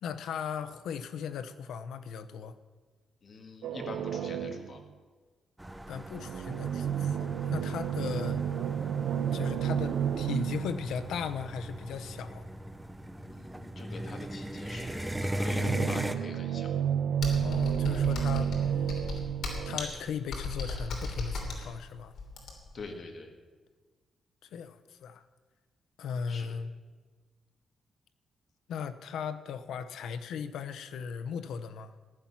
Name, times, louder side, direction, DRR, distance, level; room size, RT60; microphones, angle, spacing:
voice 1, 0.0-2.5 5.9-8.4 9.3-12.5 17.4-19.1 19.7-22.1 24.5-25.2 26.0-26.7 28.7-31.9, left 7 dB, 90° left, 11 dB, 0.8 m, -37 dB
voice 2, 3.2-4.8 13.2-16.7 22.7-23.3 26.3-26.6, left 3 dB, 45° left, 4 dB, 1.9 m, -44 dB
sound 1, 3.6-4.8 6.0-12.1 15.6-19.8, right 9 dB, 90° right, 0.5 m, -31 dB
sound 2, 5.6-16.1, right 1 dB, 10° right, 0.6 m, -38 dB
Computer keyboard, 17.2-22.8, left 3 dB, 65° left, 3.1 m, -36 dB
14.5 x 11.0 x 5.9 m, 1.4 s
cardioid pair, 135°, 0 cm